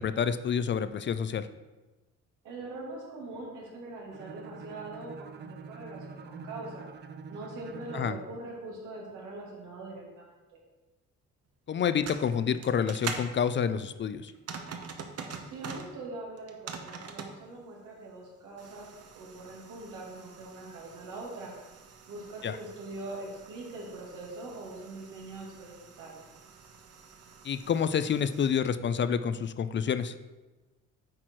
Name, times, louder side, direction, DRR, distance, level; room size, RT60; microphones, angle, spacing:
voice 1, 0.0-1.5 7.9-8.1 11.7-14.3 22.4-22.6 27.4-30.1, left 7 dB, 40° left, 12 dB, 0.4 m, -28 dB
voice 2, 2.4-6.9 7.3-10.6 15.5-18.9 19.1-21.5 22.1-26.1, right 2 dB, 90° right, -3 dB, 2.3 m, -42 dB
Bowed string instrument, 4.1-8.3, right 5 dB, 35° right, 0.5 m, -45 dB
sound 1, 11.8-13.3 14.3-15.9 16.4-17.3 18.6-28.5, right 5 dB, 55° right, 0.9 m, -45 dB
8.7 x 4.5 x 4.5 m, 1.2 s
cardioid pair, 90°, 30 cm